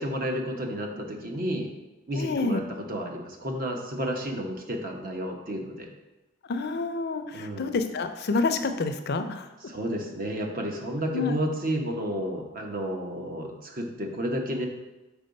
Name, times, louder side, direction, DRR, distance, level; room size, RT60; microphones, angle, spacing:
voice 1, 0.0-1.7 2.1-5.9 7.3-7.7 9.7-14.7, equal, 45° right, 2 dB, 1.0 m, -31 dB
voice 2, 2.2-2.6 6.4-9.5 11.1-11.4, left 3 dB, 55° left, 7 dB, 0.5 m, -28 dB
5.4 x 4.6 x 5.2 m, 1.0 s
head